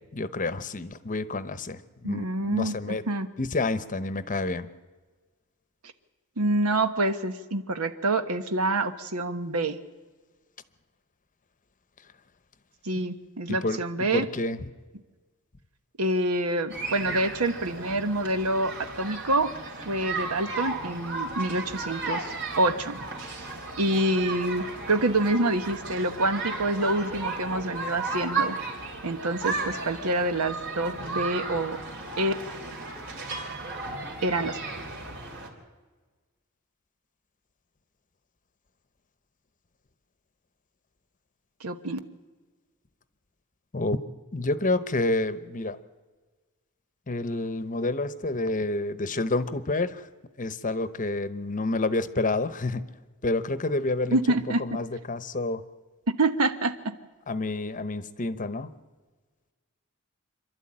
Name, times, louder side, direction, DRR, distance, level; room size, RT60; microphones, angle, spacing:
voice 1, 0.1-3.0 3.4-4.7 13.6-13.8 14.1-14.7 43.7-44.0 44.3-45.8 47.1-50.1 50.4-52.8 53.2-54.2 54.6-55.6 57.3-58.7, left 2 dB, 35° left, 13 dB, 0.9 m, -29 dB
voice 2, 2.0-3.3 6.4-9.8 12.8-14.3 16.0-19.5 19.9-23.0 23.8-28.6 29.0-31.8 32.2-32.3 34.2-34.6 41.6-42.0 54.1-54.8 56.2-56.9, right 2 dB, 80° right, 9 dB, 1.3 m, -27 dB
sound 1, 16.7-35.5, right 3 dB, 60° right, 3.8 m, -34 dB
27.0 x 12.0 x 8.8 m, 1.4 s
head